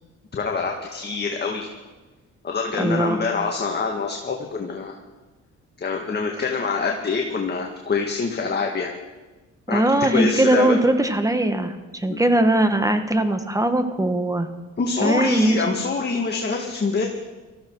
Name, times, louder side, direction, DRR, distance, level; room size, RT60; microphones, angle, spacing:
voice 1, 0.3-1.7 2.4-5.0 5.8-8.9 9.7-9.8 10.1-10.8 12.1-12.2 14.8-17.1, left 4 dB, 35° left, 1 dB, 1.8 m, -25 dB
voice 2, 2.8-3.2 9.7-14.5 15.0-15.6, right 1 dB, 10° right, 8 dB, 1.5 m, -20 dB
18.5 x 14.5 x 4.7 m, 1.2 s
cardioid pair, 90°, 30 cm